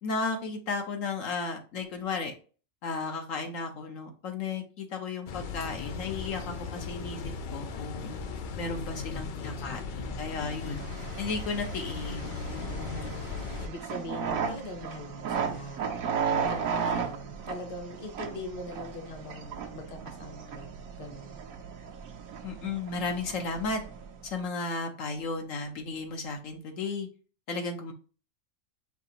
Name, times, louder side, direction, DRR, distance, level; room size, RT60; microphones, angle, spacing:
voice 1, 0.0-2.3 2.8-8.1 8.6-10.8 11.2-13.1 22.4-23.8 24.2-27.1 27.5-27.9, left 4 dB, 70° left, 4 dB, 1.1 m, -34 dB
sound 1, 5.3-13.7, left 5 dB, 90° left, 0.4 m, -37 dB
voice 2, 8.9-10.3 12.6-13.1 13.6-21.4, left 1 dB, 30° left, 5 dB, 0.8 m, -42 dB
sound 2, 10.4-24.3, right 6 dB, 75° right, 1.1 m, -35 dB
5.9 x 2.8 x 2.7 m, 0.37 s
omnidirectional pair, 1.5 m